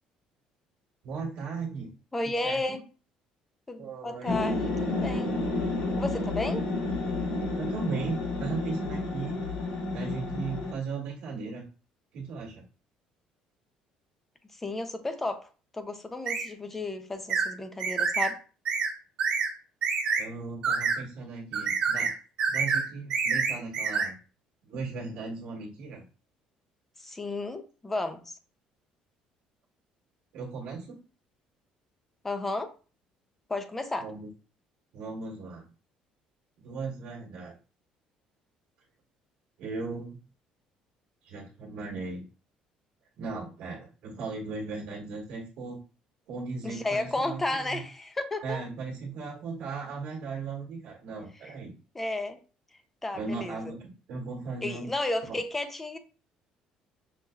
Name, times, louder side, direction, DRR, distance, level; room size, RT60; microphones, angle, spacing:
voice 1, 1.0-1.9 2.2-2.8 3.8-4.4 7.5-9.4 9.9-11.6 12.1-12.6 20.2-22.1 22.5-24.2 24.6-26.0 30.3-31.0 34.0-34.3 34.9-35.7 36.6-37.5 39.6-40.2 41.2-42.2 43.2-45.8 46.3-47.8 48.4-51.7 53.1-54.9 55.2-55.4, right 4 dB, 70° right, 1.4 m, -37 dB
voice 2, 2.1-2.8 3.7-5.3 5.9-6.6 14.6-15.5 15.7-18.4 27.0-28.4 32.2-32.7 33.5-34.1 46.6-48.6 51.4-51.5 51.9-52.4 53.0-53.6 54.6-56.0, left 2 dB, 10° left, 0.4 m, -33 dB
sound 1, 4.3-10.7, left 2 dB, 75° left, 1.1 m, -30 dB
sound 2, 16.3-16.5 17.3-17.5 17.8-18.3 18.7-18.9 19.2-19.5 19.8-20.2 20.6-21.0 21.5-22.1 22.4-22.8 23.1-24.1, right 5 dB, 40° right, 1.0 m, -27 dB
5.6 x 2.6 x 2.3 m
cardioid pair, 175°, 2 cm